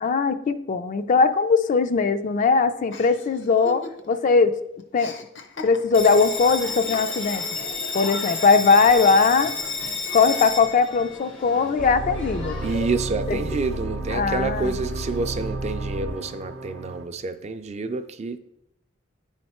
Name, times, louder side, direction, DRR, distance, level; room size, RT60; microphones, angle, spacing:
voice 1, 0.0-4.5 4.9-5.2 5.6-7.4 7.9-9.6 10.1-12.6 13.3-13.4 14.1-14.7, left 4 dB, 45° left, 0.3 m, -20 dB
Chuckle chortle, 2.9-4.3 4.5-6.2 6.9-7.5, left 3 dB, 70° left, 0.7 m, -40 dB
Bell, 5.9-12.9, left 4 dB, 90° left, 1.2 m, -31 dB
sound 1, 11.8-17.1, right 1 dB, 85° right, 0.6 m, -31 dB
voice 2, 12.6-18.4, right 3 dB, 35° right, 0.4 m, -28 dB
9.6 x 3.3 x 4.2 m
head